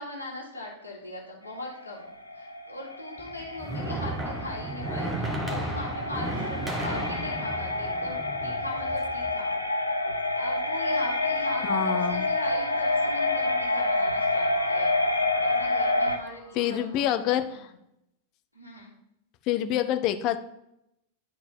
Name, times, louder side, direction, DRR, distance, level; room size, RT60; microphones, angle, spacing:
voice 1, 0.0-2.1 2.3-9.5 10.3-14.9 15.4-17.7 18.5-18.9, left 2 dB, 85° right, -4 dB, 1.8 m, -40 dB
sound 1, 1.5-16.2, left 2 dB, 85° left, 0.6 m, -28 dB
sound 2, 3.2-9.3, right 1 dB, 10° right, 1.1 m, -34 dB
sound 3, 7.2-17.2, left 4 dB, 20° left, 1.0 m, -45 dB
voice 2, 11.6-12.3 16.6-17.6 19.5-20.4, left 11 dB, 40° left, 10 dB, 0.6 m, -26 dB
10.0 x 4.2 x 4.3 m, 0.80 s
figure-of-eight pair, 90°, 0 cm